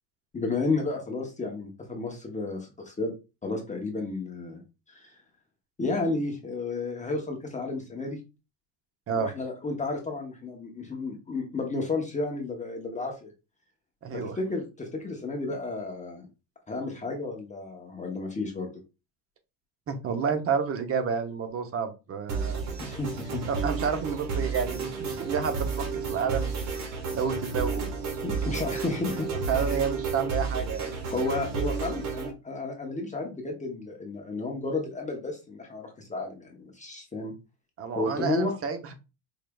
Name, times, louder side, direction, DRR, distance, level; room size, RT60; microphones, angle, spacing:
voice 1, 0.3-3.1 3.4-4.6 4.9-5.1 5.8-8.2 9.1-13.3 14.1-16.3 16.7-18.7 22.8-23.4 28.2-29.3 29.5-29.8 31.1-37.3 38.0-38.6, left 3 dB, 15° left, 1 dB, 0.8 m, -32 dB
voice 2, 14.0-14.4 19.9-22.7 23.5-26.5 27.1-27.9 29.5-31.0 37.8-38.9, right 6 dB, 30° right, 8 dB, 0.7 m, -30 dB
sound 1, 22.3-32.3, right 5 dB, 60° right, 1.4 m, -31 dB
4.7 x 3.1 x 2.3 m, 0.28 s
cardioid pair, 130°, 47 cm